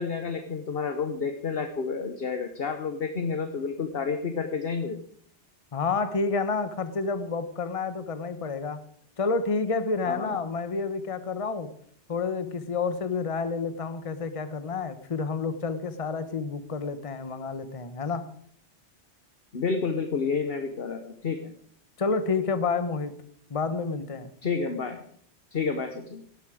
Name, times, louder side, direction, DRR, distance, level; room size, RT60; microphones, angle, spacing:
voice 1, 0.0-5.0 10.1-10.4 19.5-21.5 24.4-25.0 25.5-26.2, left 5 dB, 55° left, 7 dB, 1.3 m, -30 dB
voice 2, 5.7-8.8 9.2-11.7 12.1-18.3 22.0-23.1 23.5-24.3, left 4 dB, 30° left, 11 dB, 1.0 m, -29 dB
17.0 x 12.5 x 5.0 m, 0.62 s
omnidirectional pair, 1.2 m